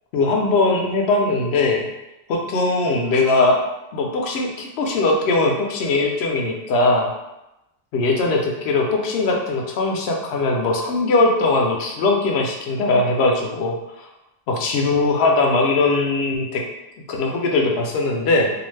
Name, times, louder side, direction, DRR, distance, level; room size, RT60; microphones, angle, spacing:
voice 1, 0.1-1.9 2.3-3.6 3.9-7.1 7.9-14.1 14.5-16.6 17.1-18.5, left 3 dB, 85° left, 1 dB, 0.8 m, -20 dB
2.4 x 2.4 x 3.2 m, 0.93 s
omnidirectional pair, 1.0 m